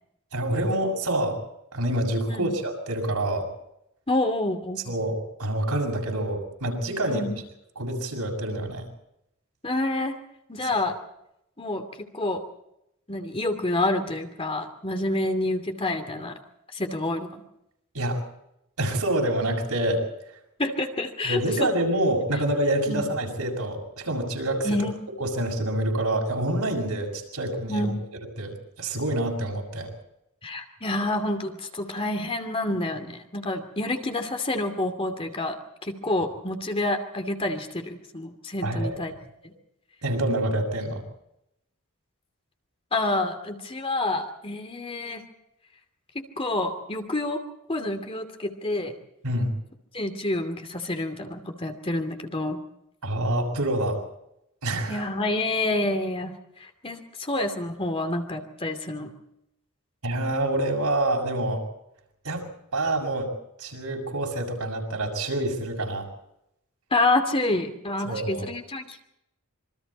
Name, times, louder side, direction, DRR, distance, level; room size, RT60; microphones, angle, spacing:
voice 1, 0.3-1.4 1.7-3.5 4.9-7.3 7.8-8.9 10.6-10.8 17.9-18.2 18.8-20.0 21.2-24.8 25.2-27.9 28.4-29.9 38.6-39.0 40.0-41.0 49.2-49.5 53.0-54.0 54.6-55.1 60.0-61.6 62.2-62.5 62.7-63.3 63.6-66.1 68.0-68.5, right 1 dB, 85° right, 2 dB, 6.8 m, -27 dB
voice 2, 4.1-4.8 7.0-7.4 9.6-10.2 10.5-10.9 11.6-12.4 13.1-16.4 16.7-17.3 20.6-21.7 22.9-23.0 24.6-25.1 27.7-28.0 30.4-35.6 35.8-39.1 39.4-39.5 42.9-45.2 46.1-47.4 47.7-48.9 49.9-52.6 54.9-56.3 56.6-59.1 66.9-69.0, left 2 dB, 25° left, 6 dB, 2.6 m, -28 dB
27.0 x 24.0 x 4.3 m, 0.82 s
head